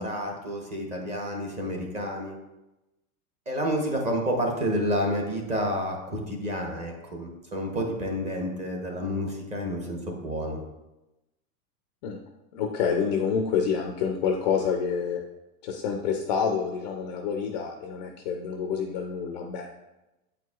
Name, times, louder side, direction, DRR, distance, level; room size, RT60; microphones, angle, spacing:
voice 1, 0.0-2.4 3.5-10.6, equal, 15° right, 1 dB, 0.7 m, -29 dB
voice 2, 12.5-15.2 15.6-19.7, left 6 dB, 35° left, 2 dB, 0.4 m, -28 dB
8.5 x 4.6 x 2.4 m, 0.99 s
supercardioid pair, 155°, 43 cm